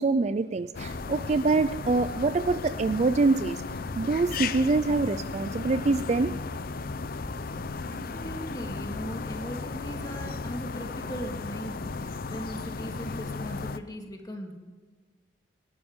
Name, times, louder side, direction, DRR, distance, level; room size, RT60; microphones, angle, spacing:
voice 1, 0.0-3.6 4.0-6.3, right 3 dB, 35° right, 13 dB, 0.4 m, -25 dB
sound 1, 0.7-13.8, left 4 dB, 50° left, 0.6 m, -35 dB
sound 2, 3.7-8.9, equal, 80° left, 5.3 m, -47 dB
voice 2, 7.9-14.5, equal, 20° left, 2 dB, 2.0 m, -39 dB
19.5 x 12.0 x 3.7 m, 1.4 s
head